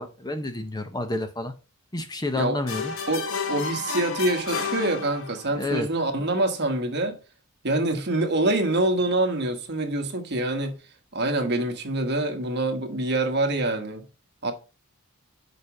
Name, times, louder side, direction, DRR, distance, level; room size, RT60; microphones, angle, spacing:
voice 1, 0.0-1.5 1.9-2.9 5.5-5.9, left 2 dB, 20° left, 0.7 m, -29 dB
sound 1, 2.7-5.6, left 5 dB, 60° left, 1.1 m, -31 dB
voice 2, 3.5-7.2 7.6-10.8 11.1-14.0 14.4-14.5, right 2 dB, 50° right, 1.3 m, -25 dB
6.6 x 5.1 x 4.8 m
head